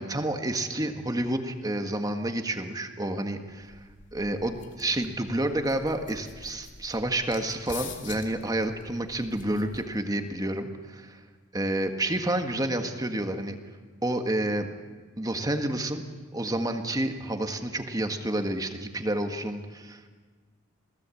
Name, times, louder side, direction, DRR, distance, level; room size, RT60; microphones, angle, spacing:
voice 1, 0.0-3.8 4.1-11.2 11.5-13.5 14.0-14.7 15.2-16.0 16.3-20.1, right 1 dB, 20° right, 5 dB, 1.6 m, -29 dB
sound 1, 3.5-10.2, left 5 dB, 60° left, 2.9 m, -46 dB
27.0 x 18.5 x 8.5 m, 1.4 s
head